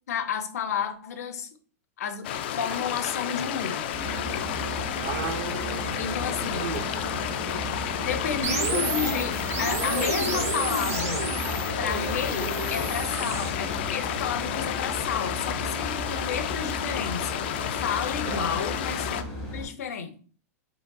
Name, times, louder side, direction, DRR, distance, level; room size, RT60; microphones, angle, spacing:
voice 1, 0.1-1.5 2.0-2.3 2.6-3.9 6.0-6.8 8.0-11.3 11.8-20.2, left 7 dB, 80° left, 9 dB, 0.7 m, -31 dB
sound 1, 2.2-19.2, left 10 dB, 40° left, 0.3 m, -31 dB
sound 2, 3.9-19.6, equal, 5° left, 2.1 m, -36 dB
voice 2, 5.0-6.2 6.5-7.1 7.5-7.6 12.3-12.5 18.2-18.5, right 8 dB, 40° right, 7 dB, 0.6 m, -36 dB
sound 3, 8.4-13.5, right 5 dB, 70° right, 0.9 m, -31 dB
5.0 x 3.7 x 2.3 m, 0.42 s
supercardioid pair, 180°, 8 cm